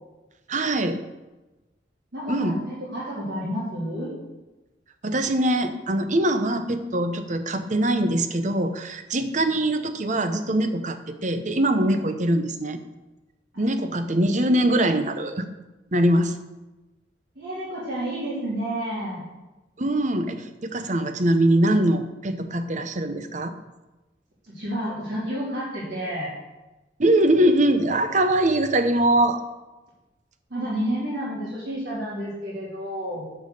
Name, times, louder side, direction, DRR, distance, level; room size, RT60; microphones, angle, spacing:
voice 1, 0.5-1.0 2.3-2.6 5.0-12.8 13.6-15.5 15.9-16.3 19.8-23.5 27.0-29.4, right 1 dB, 40° right, 9 dB, 0.9 m, -22 dB
voice 2, 2.1-4.1 13.5-13.6 17.4-19.3 24.5-26.3 30.5-33.3, equal, 75° right, -9 dB, 3.7 m, -30 dB
10.5 x 5.7 x 6.8 m, 1.1 s
head